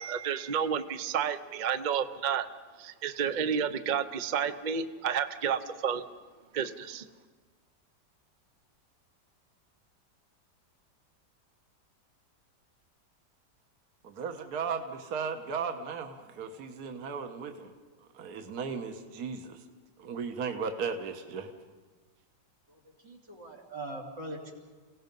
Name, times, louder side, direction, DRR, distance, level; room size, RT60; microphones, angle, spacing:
voice 1, 0.0-2.5 2.8-6.1 6.5-7.0, right 7 dB, 50° right, 10 dB, 0.5 m, -31 dB
voice 2, 14.0-17.7 18.1-19.6 20.0-21.5, right 5 dB, 65° right, 5 dB, 1.6 m, -36 dB
voice 3, 22.7-24.5, right 2 dB, 90° right, 2 dB, 3.8 m, -42 dB
29.0 x 17.5 x 5.3 m, 1.4 s
omnidirectional pair, 1.9 m